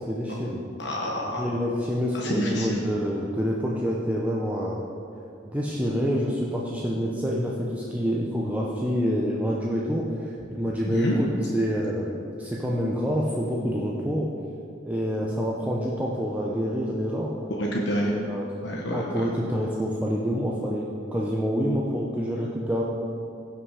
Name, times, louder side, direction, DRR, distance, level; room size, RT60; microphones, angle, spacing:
voice 1, 0.0-0.6 1.3-4.8 5.4-11.3 11.5-14.3 14.8-17.3 18.0-22.8, equal, 10° right, -3 dB, 0.7 m, -27 dB
voice 2, 0.8-1.4 2.1-2.8 10.8-11.2 17.5-18.1 18.6-19.2, equal, 65° left, -2 dB, 1.1 m, -28 dB
16.5 x 5.8 x 4.9 m, 2.7 s
head